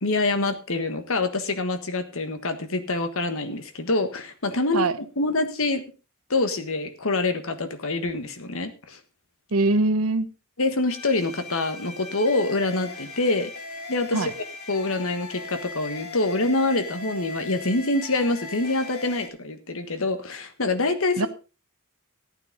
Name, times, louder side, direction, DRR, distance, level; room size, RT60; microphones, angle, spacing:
voice 1, 0.0-4.9 5.2-5.8 6.3-9.0 10.6-13.5 13.9-14.2 14.7-21.3, left 2 dB, 65° left, 9 dB, 1.5 m, -25 dB
voice 2, 9.5-10.3 14.1-14.3 21.2-21.3, right 2 dB, 75° right, 13 dB, 0.9 m, -22 dB
sound 1, 10.9-19.3, left 3 dB, 90° left, 2.5 m, -39 dB
14.0 x 9.2 x 3.9 m, 0.33 s
head